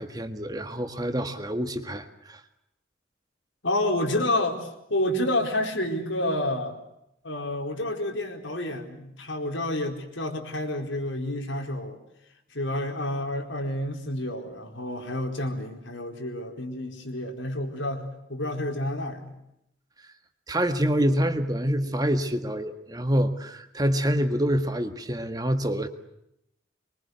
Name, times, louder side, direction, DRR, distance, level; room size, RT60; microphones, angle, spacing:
voice 1, 0.0-2.4 20.5-25.9, equal, 20° right, 8 dB, 1.6 m, -26 dB
voice 2, 3.6-6.8 7.2-12.0 12.5-19.3, left 1 dB, 75° left, 4 dB, 4.5 m, -29 dB
25.0 x 23.0 x 8.1 m, 0.81 s
head